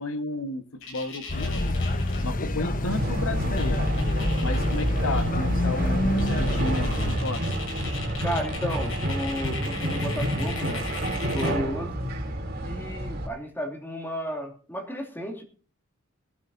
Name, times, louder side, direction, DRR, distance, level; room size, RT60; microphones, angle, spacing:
voice 1, 0.0-1.8 2.2-3.9 4.4-7.5, left 2 dB, 85° left, 9 dB, 1.5 m, -33 dB
sound 1, 0.8-2.2 3.3-3.4 3.6-5.2 5.6-5.7 6.2-11.6, left 4 dB, 65° left, 7.4 m, -39 dB
sound 2, 1.3-7.2, left 1 dB, 40° left, 1.1 m, -26 dB
sound 3, 2.9-13.3, equal, 50° right, 3.3 m, -29 dB
voice 2, 8.2-10.8 11.3-12.0 12.6-15.4, equal, 10° left, 3 dB, 2.7 m, -33 dB
20.0 x 12.5 x 2.7 m, 0.40 s
head